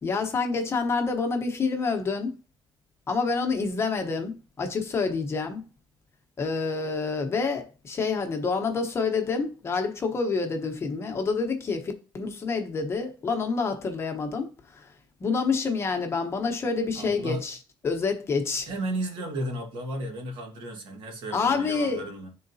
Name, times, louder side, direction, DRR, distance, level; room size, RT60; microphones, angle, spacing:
voice 1, 0.0-2.3 3.1-5.7 6.4-14.9 15.2-17.6 17.8-18.7 21.3-22.1, left 4 dB, 30° left, 1.0 m, -28 dB
voice 2, 16.9-17.4 18.7-22.3, right 1 dB, 80° right, 1.7 m, -33 dB
9.3 x 3.9 x 2.7 m
cardioid pair, 140°, 8 cm